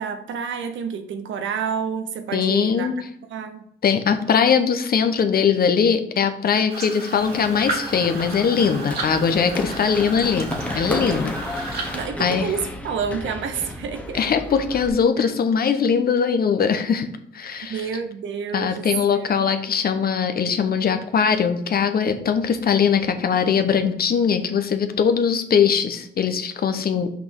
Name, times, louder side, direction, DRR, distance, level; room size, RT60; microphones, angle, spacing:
voice 1, 0.0-2.9 3.3-3.6 11.9-14.2 15.2-15.3 17.7-19.5 26.9-27.0, right 6 dB, 75° right, 1.0 m, -29 dB
voice 2, 2.3-2.9 3.8-12.5 14.1-17.1 17.3-17.9 18.5-27.1, left 6 dB, 50° left, 1.0 m, -21 dB
sound 1, 6.7-12.1, right 2 dB, 50° right, 2.2 m, -33 dB
Run, 7.1-14.9, left 1 dB, 5° left, 1.1 m, -33 dB
6.0 x 5.4 x 4.7 m
cardioid pair, 90°, 20 cm